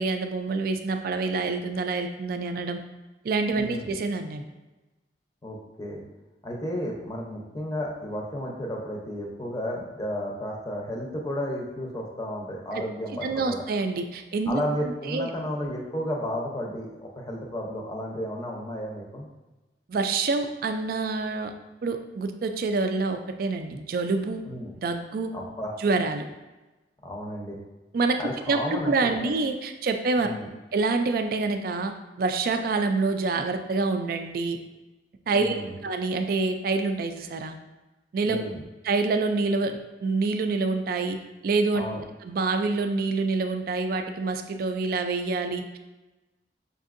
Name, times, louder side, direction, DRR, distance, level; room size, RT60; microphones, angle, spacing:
voice 1, 0.0-2.8 3.2-4.5 12.7-12.8 13.2-14.6 15.1-15.3 19.9-21.5 21.8-24.4 24.8-25.3 25.8-26.2 27.9-28.2 28.5-30.3 30.7-34.6 35.3-35.6 35.8-37.6 38.1-38.5 38.8-41.2 41.4-41.9 42.2-45.8, right 3 dB, 50° right, 7 dB, 0.3 m, -26 dB
voice 2, 3.6-3.9 5.4-6.0 6.4-13.6 14.5-19.3 24.5-24.7 25.3-25.7 27.0-27.6 28.2-29.1 30.2-30.5 35.3-35.8 38.2-38.6 41.7-42.0, equal, 20° left, -1 dB, 0.6 m, -33 dB
5.9 x 2.6 x 2.5 m, 1.1 s
head